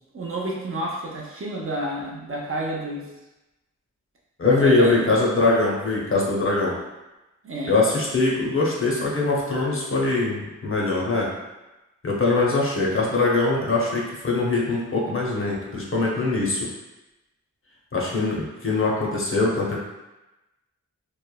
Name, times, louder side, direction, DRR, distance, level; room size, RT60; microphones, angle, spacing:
voice 1, 0.1-3.0 4.6-5.1 7.4-7.8, right 1 dB, 45° right, -3 dB, 0.5 m, -30 dB
voice 2, 4.4-6.8 7.7-11.3 12.0-16.7 17.9-19.8, left 3 dB, 45° left, -3 dB, 0.6 m, -22 dB
3.1 x 2.0 x 2.2 m, 1.0 s
wide cardioid pair, 75°, 30 cm